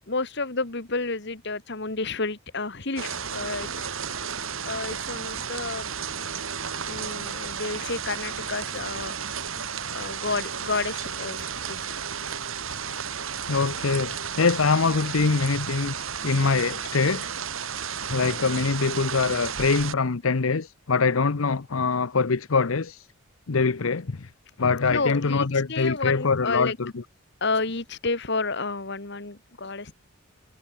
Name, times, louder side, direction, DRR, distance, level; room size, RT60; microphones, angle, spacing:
voice 1, 0.1-3.9 4.7-5.9 6.8-9.2 9.9-12.0 14.4-14.5 18.4-18.5 24.9-26.8 27.4-29.9, left 3 dB, 55° left, 2.0 m, -30 dB
sound 1, 3.0-19.9, right 7 dB, 75° right, 2.9 m, -33 dB
voice 2, 13.5-17.3 18.1-23.1 23.5-24.3 24.6-26.9, left 4 dB, 75° left, 0.8 m, -24 dB
head